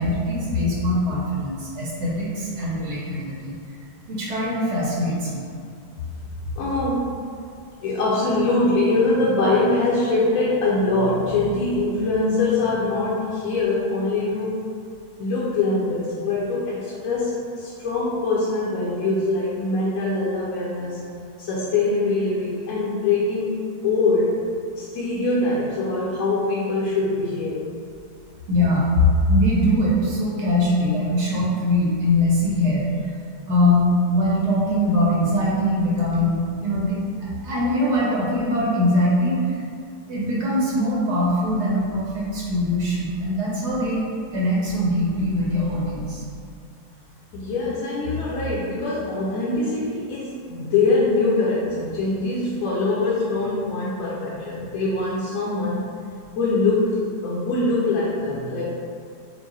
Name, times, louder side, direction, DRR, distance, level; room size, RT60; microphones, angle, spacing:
voice 1, 0.0-3.5 4.1-5.5 28.5-28.9 29.3-32.9 33.5-37.0 37.4-39.6 40.1-44.0 44.3-46.2, left 1 dB, 85° right, -5 dB, 1.7 m, -22 dB
voice 2, 6.5-7.2 7.8-14.6 15.2-21.0 21.4-23.6 23.8-24.4 24.8-27.7 47.3-55.9 56.4-58.8, left 3 dB, 65° left, -7 dB, 1.0 m, -23 dB
4.5 x 2.1 x 3.9 m, 2.3 s
omnidirectional pair, 1.7 m